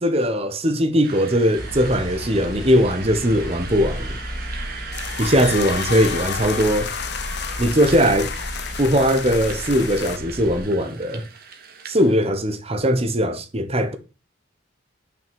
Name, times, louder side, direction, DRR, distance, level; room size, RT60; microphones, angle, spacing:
voice 1, 0.0-4.2 5.2-6.9 7.6-8.3 8.8-11.2 11.9-14.0, equal, 30° right, 1.0 m, -20 dB
sound 1, 1.0-12.2, right 5 dB, 45° right, 1.6 m, -38 dB
sound 2, 1.6-10.6, equal, 35° left, 2.3 m, -34 dB
sound 3, 4.9-10.2, left 8 dB, 55° left, 0.6 m, -31 dB
6.3 x 5.9 x 6.9 m
head